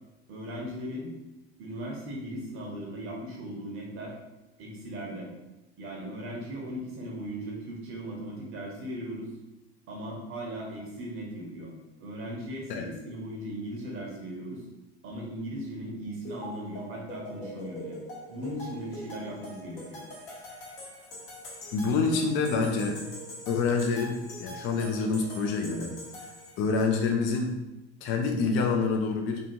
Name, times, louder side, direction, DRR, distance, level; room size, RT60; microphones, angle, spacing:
voice 1, 0.3-1.1 1.6-4.1 4.6-5.3 5.8-9.3 9.9-11.7 12.0-14.6 15.0-18.0 18.3-20.0, equal, 40° right, -2 dB, 0.8 m, -38 dB
sound 1, 16.2-26.9, equal, 60° left, 1.0 m, -43 dB
voice 2, 21.7-23.0 23.5-25.9 26.2-26.3 26.6-27.5 28.0-29.4, left 4 dB, 40° left, 3 dB, 0.4 m, -27 dB
2.5 x 2.4 x 2.8 m, 0.98 s
hypercardioid pair, 75°, 34 cm